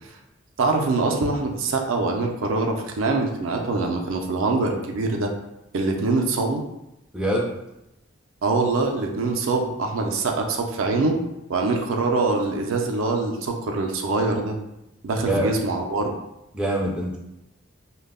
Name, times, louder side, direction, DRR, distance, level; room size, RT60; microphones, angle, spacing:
voice 1, 0.6-5.3 5.7-6.6 8.4-11.2 11.5-14.6 15.0-16.1, right 3 dB, 75° right, 2 dB, 0.4 m, -24 dB
voice 2, 7.1-7.5 15.3-15.5 16.5-17.2, right 1 dB, 5° right, -4 dB, 0.3 m, -24 dB
2.2 x 2.0 x 3.4 m, 0.87 s
head